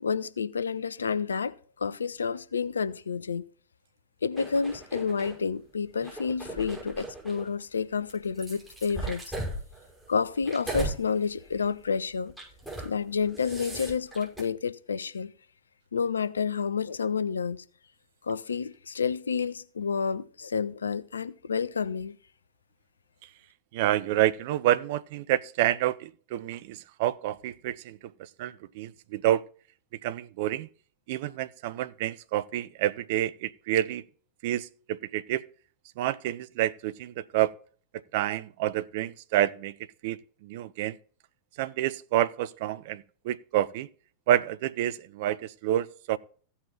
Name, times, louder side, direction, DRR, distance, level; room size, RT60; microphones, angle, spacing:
voice 1, 0.0-3.4 4.2-9.2 10.1-12.3 12.8-15.3 15.9-17.6 18.2-22.2, left 5 dB, 70° left, 0.5 m, -30 dB
sound 1, 4.4-5.4 5.9-7.5 8.1-11.0 11.4-11.7 12.3-12.9 13.2-14.4, right 2 dB, 10° right, 6.1 m, -37 dB
voice 2, 23.7-29.4 30.0-30.7 31.1-34.0 34.4-35.4 36.0-37.5 38.1-39.7 40.0-41.0 41.6-43.9 44.3-46.2, right 13 dB, 50° right, 0.5 m, -28 dB
15.5 x 5.6 x 4.0 m
figure-of-eight pair, 90°, 0 cm